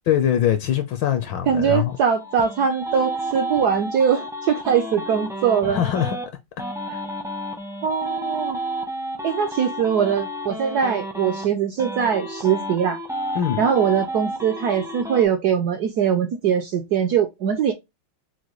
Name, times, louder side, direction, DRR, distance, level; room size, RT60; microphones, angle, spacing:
voice 1, 0.1-2.0 5.6-6.2 6.9-7.0 13.3-13.6, left 10 dB, 70° left, 1.3 m, -22 dB
voice 2, 1.5-5.8 7.8-8.6 9.2-13.0 13.6-17.7, right 7 dB, 75° right, 0.9 m, -22 dB
sound 1, 1.9-6.2 6.6-11.5 11.8-15.2, right 1 dB, 5° right, 0.3 m, -31 dB
6.2 x 2.2 x 3.0 m
omnidirectional pair, 2.3 m